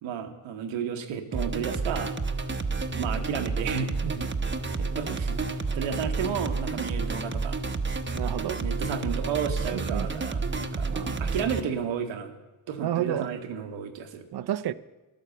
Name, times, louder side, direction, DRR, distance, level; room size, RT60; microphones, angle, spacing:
voice 1, 0.0-2.1 2.9-3.9 4.8-7.6 8.6-10.9 11.2-12.3 12.7-14.2, right 7 dB, 90° right, 1.2 m, -32 dB
sound 1, 1.3-11.6, right 4 dB, 25° right, 0.9 m, -30 dB
voice 2, 8.2-8.6 9.7-10.1 10.9-11.2 12.8-13.3 14.3-14.7, right 12 dB, 60° right, 0.6 m, -31 dB
11.5 x 9.4 x 6.9 m
supercardioid pair, 60°, 45 cm